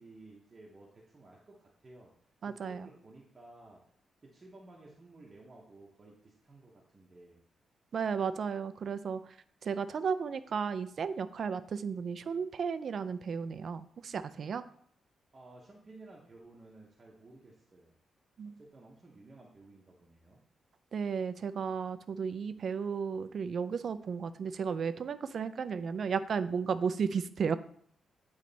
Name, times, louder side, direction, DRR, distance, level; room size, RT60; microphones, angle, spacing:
voice 1, 0.0-2.1 2.4-3.8 4.2-7.4 15.3-17.9 18.6-20.4, right 2 dB, 25° right, -3 dB, 0.8 m, -54 dB
voice 2, 2.4-2.9 7.9-9.2 9.6-14.6 18.4-18.6 20.9-27.5, right 6 dB, 45° right, 13 dB, 0.3 m, -34 dB
8.3 x 3.2 x 3.9 m, 0.64 s
wide cardioid pair, 170°, 0 cm